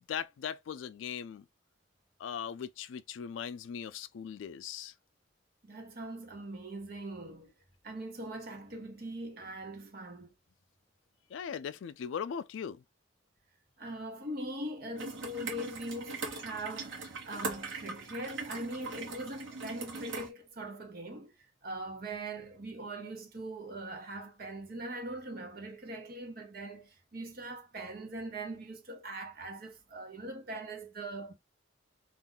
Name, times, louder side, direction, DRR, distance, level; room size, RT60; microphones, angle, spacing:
voice 1, 0.1-1.4 2.2-4.9 11.3-12.8, left 7 dB, 85° left, 0.3 m, -39 dB
voice 2, 5.6-7.5 7.8-10.3 13.8-21.3 21.6-31.3, right 1 dB, 50° right, 0.9 m, -41 dB
sound 1, 15.0-20.3, right 4 dB, 85° right, 1.0 m, -41 dB
2.5 x 2.2 x 3.7 m
head